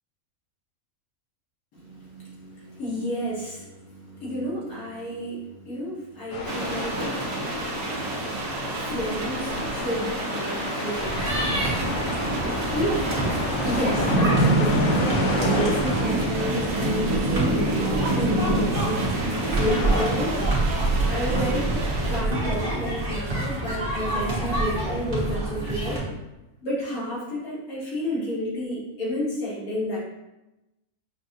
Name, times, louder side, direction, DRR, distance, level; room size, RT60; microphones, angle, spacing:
voice 1, 1.7-7.4 7.9-8.1 8.8-11.1 12.7-13.1 13.6-19.1 19.6-20.5 21.1-21.7 22.1-26.0 26.6-30.0, equal, 85° left, -7 dB, 1.9 m, -31 dB
sound 1, 6.3-20.1, left 3 dB, 65° left, 0.9 m, -32 dB
sound 2, 6.5-22.2, right 2 dB, 70° right, 1.0 m, -27 dB
sound 3, 11.0-26.0, right 2 dB, 40° right, 1.2 m, -28 dB
5.7 x 2.4 x 2.6 m, 0.99 s
omnidirectional pair, 1.5 m